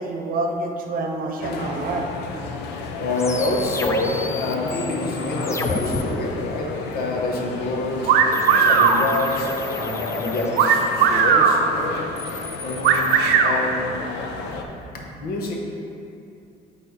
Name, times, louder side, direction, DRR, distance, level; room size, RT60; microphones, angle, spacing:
voice 1, 0.0-2.1, right 2 dB, 55° right, 3 dB, 0.8 m, -27 dB
sound 1, 1.4-14.6, left 4 dB, 85° left, 0.6 m, -32 dB
voice 2, 3.0-11.9 12.6-13.1 13.4-13.9 14.9-15.6, left 2 dB, 65° left, 0 dB, 1.1 m, -27 dB
sound 2, 3.2-6.0 8.3-11.1 12.0-13.2, left 3 dB, 15° left, 0.4 m, -33 dB
sound 3, 8.1-9.0 10.6-11.6 12.8-13.6, right 7 dB, 80° right, 0.6 m, -16 dB
8.7 x 3.4 x 4.0 m, 2.6 s
cardioid pair, 110°, 17 cm